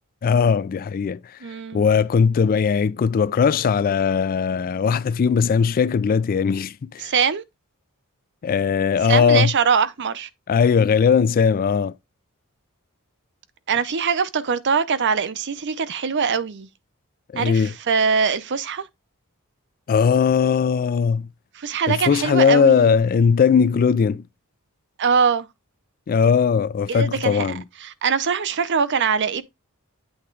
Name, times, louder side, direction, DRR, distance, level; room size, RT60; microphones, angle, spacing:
voice 1, 0.2-1.4 1.7-7.1 8.4-9.5 10.5-11.9 17.3-17.7 19.9-21.3 21.9-24.2 26.1-27.6, left 6 dB, 40° left, 0.3 m, -19 dB
voice 2, 1.4-1.8 7.0-7.4 9.0-10.3 13.7-16.7 17.3-18.9 21.5-22.9 25.0-25.5 26.9-29.4, right 6 dB, 55° right, 0.6 m, -22 dB
8.7 x 3.5 x 4.5 m
head